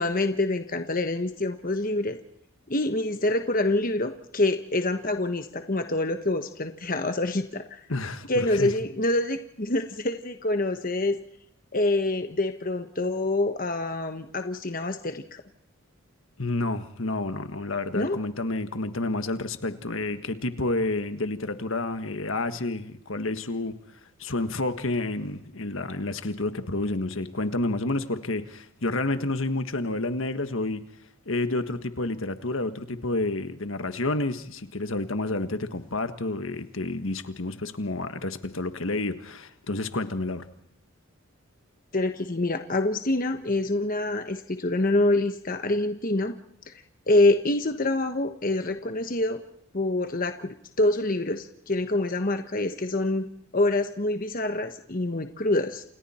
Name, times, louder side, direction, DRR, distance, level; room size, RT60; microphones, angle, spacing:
voice 1, 0.0-2.2 2.7-7.8 8.3-11.2 11.7-15.4 17.9-18.2 41.9-46.3 47.1-49.4 49.7-53.3 53.5-55.8, left 2 dB, 40° left, 7 dB, 1.2 m, -26 dB
voice 2, 7.9-8.7 16.4-23.8 24.2-30.8 31.2-40.5, left 2 dB, 65° left, 9 dB, 1.5 m, -29 dB
29.0 x 28.5 x 4.4 m, 0.73 s
head